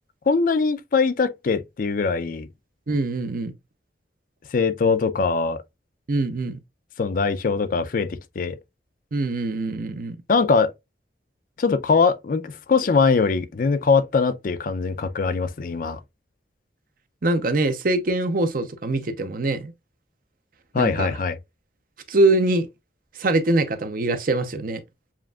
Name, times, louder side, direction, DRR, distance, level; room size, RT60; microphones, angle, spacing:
voice 1, 0.3-2.5 4.5-5.6 7.0-8.6 10.3-10.7 11.6-16.0 20.7-21.4, left 4 dB, 50° left, 0.4 m, -22 dB
voice 2, 2.9-3.5 6.1-6.6 9.1-10.2 17.2-19.7 20.8-21.1 22.1-22.7 23.2-24.8, right 2 dB, 55° right, 0.7 m, -23 dB
7.3 x 2.5 x 2.3 m
head